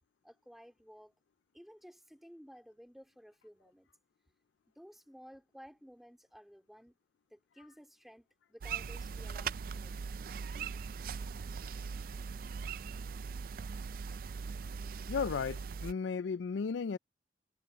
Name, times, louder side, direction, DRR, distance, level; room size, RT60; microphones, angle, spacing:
voice 1, 0.2-1.1 1.5-3.9 4.8-7.0 7.3-9.9, equal, ahead, 3.7 m, -55 dB
sound 1, 8.6-15.9, right 6 dB, 50° right, 0.4 m, -40 dB
voice 2, 15.1-17.0, left 5 dB, 90° left, 0.4 m, -34 dB
head